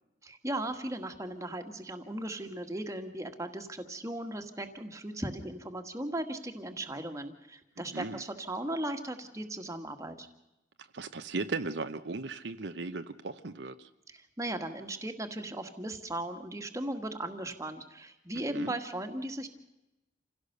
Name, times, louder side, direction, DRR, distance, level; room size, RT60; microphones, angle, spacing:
voice 1, 0.2-10.3 14.1-19.5, right 1 dB, 15° right, 6 dB, 1.7 m, -37 dB
voice 2, 10.9-13.9 18.4-18.8, right 3 dB, 70° right, 9 dB, 0.9 m, -37 dB
27.5 x 16.5 x 6.7 m, 0.96 s
head